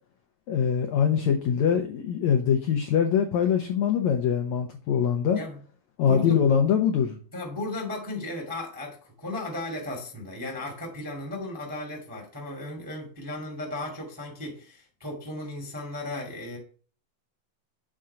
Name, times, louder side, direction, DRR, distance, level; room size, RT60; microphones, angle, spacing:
voice 1, 0.5-5.4 6.0-7.2, left 8 dB, 80° left, 1.6 m, -23 dB
voice 2, 6.1-6.4 7.3-16.6, left 2 dB, 10° right, 1.0 m, -35 dB
7.6 x 3.8 x 5.6 m
omnidirectional pair, 4.2 m